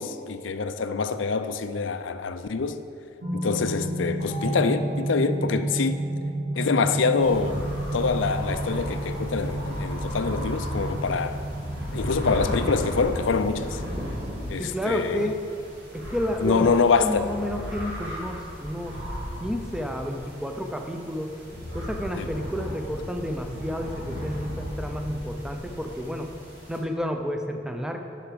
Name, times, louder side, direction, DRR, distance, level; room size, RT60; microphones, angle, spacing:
voice 1, 0.0-2.8 3.3-6.0 6.6-11.4 11.9-13.8 14.5-15.3 16.4-17.3 22.1-22.3, left 4 dB, 90° left, 0.5 m, -25 dB
sound 1, 3.2-15.8, right 1 dB, 40° right, 2.5 m, -32 dB
sound 2, 7.2-26.8, equal, 65° right, 2.6 m, -35 dB
voice 2, 14.6-15.3 15.9-16.7 17.0-19.0 19.4-21.3 21.7-26.3 26.7-28.0, equal, 5° right, 0.6 m, -30 dB
10.5 x 5.9 x 6.8 m
head